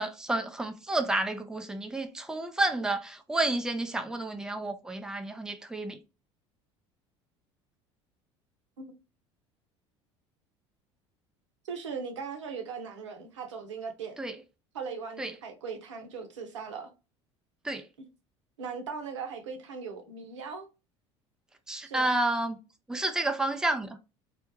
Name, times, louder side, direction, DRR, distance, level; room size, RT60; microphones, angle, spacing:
voice 1, 0.0-6.0 14.2-14.4 15.2-15.4 17.6-17.9 21.7-22.6 22.9-24.0, right 2 dB, 5° right, 0.5 m, -30 dB
voice 2, 11.6-14.2 14.7-16.9 18.6-20.7 21.8-22.1, right 5 dB, 80° right, 0.7 m, -39 dB
2.3 x 2.1 x 3.0 m
hypercardioid pair, 65°, 15 cm